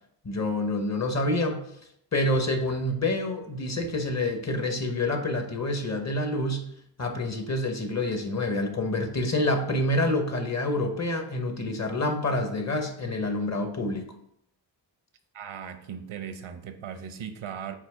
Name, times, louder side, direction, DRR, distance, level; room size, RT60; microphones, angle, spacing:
voice 1, 0.2-1.6 2.1-6.7 7.0-14.0, left 1 dB, 35° left, 5 dB, 1.0 m, -27 dB
voice 2, 15.3-17.7, right 8 dB, 85° right, 8 dB, 0.9 m, -38 dB
8.4 x 2.9 x 4.7 m, 0.72 s
wide cardioid pair, 125°, 47 cm